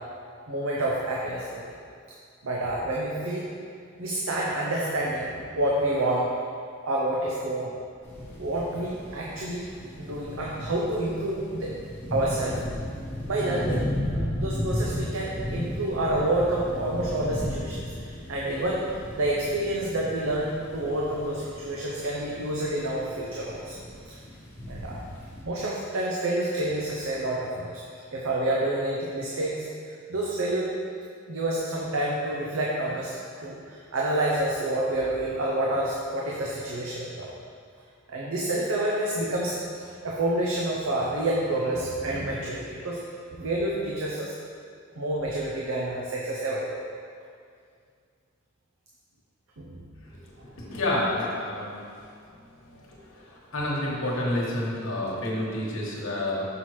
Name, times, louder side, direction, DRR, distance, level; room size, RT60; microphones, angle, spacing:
voice 1, 0.5-1.6 2.4-3.5 4.0-6.3 6.8-7.7 8.4-9.6 10.0-11.7 12.1-12.6 13.3-18.9 19.1-23.7 24.7-25.0 25.4-27.7 28.1-30.7 31.3-37.3 38.1-43.0 43.3-44.3 45.0-46.8 49.6-49.8, right 1 dB, 85° right, -4 dB, 0.7 m, -28 dB
sound 1, 8.0-25.4, equal, 10° left, 1.2 m, -35 dB
voice 2, 50.4-52.1 52.7-56.5, left 1 dB, 75° left, -4 dB, 1.3 m, -29 dB
5.8 x 5.7 x 3.1 m, 2.2 s
head